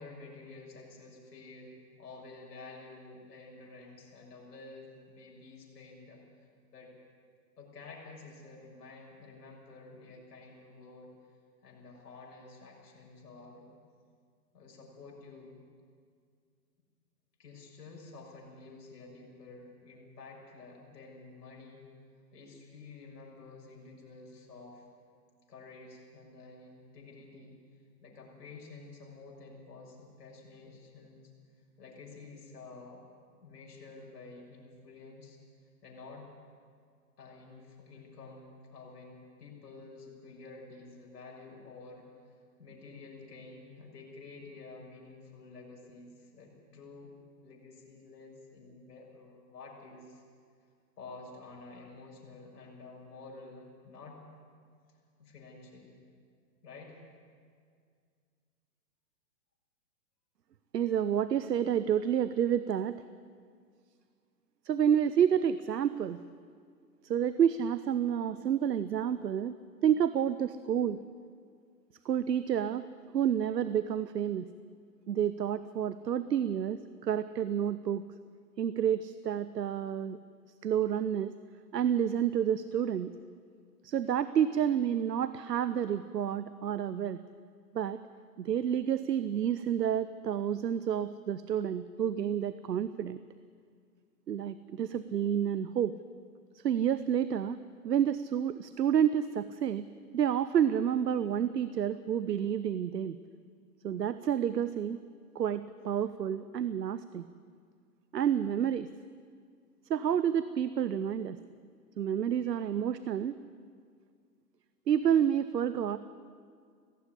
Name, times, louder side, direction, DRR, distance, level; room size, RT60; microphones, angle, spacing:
voice 1, 0.0-6.9 7.6-11.3 11.6-13.7 14.5-15.6 17.4-21.8 22.3-24.8 25.5-27.5 28.0-31.2 31.8-33.0 33.4-35.4 35.8-36.3 37.2-47.1 47.4-50.2 51.0-54.2 55.2-56.0 56.6-57.0, left 3 dB, 75° left, -2 dB, 6.9 m, -50 dB
voice 2, 60.7-63.0 64.6-66.2 67.0-69.5 69.8-71.0 72.0-74.5 75.1-78.0 78.6-80.2 80.6-81.3 81.7-83.1 83.8-87.2 87.7-88.0 88.4-93.2 94.3-95.9 96.5-97.6 97.8-99.8 100.1-103.2 103.8-105.0 105.3-107.2 108.1-108.9 109.9-111.4 112.0-113.4 114.9-116.0, right 9 dB, 90° right, 14 dB, 0.9 m, -29 dB
17.5 x 15.5 x 9.7 m, 2.1 s
hypercardioid pair, 130°, 48 cm